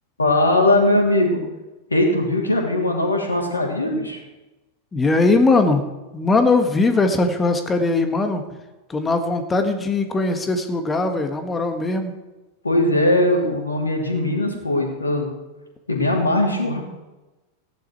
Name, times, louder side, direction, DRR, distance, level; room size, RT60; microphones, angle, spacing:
voice 1, 0.2-1.4 1.9-4.2 12.6-15.3 15.9-16.8, left 1 dB, 80° left, 1 dB, 3.0 m, -20 dB
voice 2, 4.9-5.8 6.1-8.4 8.9-12.1, left 3 dB, 15° left, 7 dB, 1.7 m, -20 dB
16.0 x 10.5 x 4.7 m, 1.1 s
figure-of-eight pair, 90°, 0 cm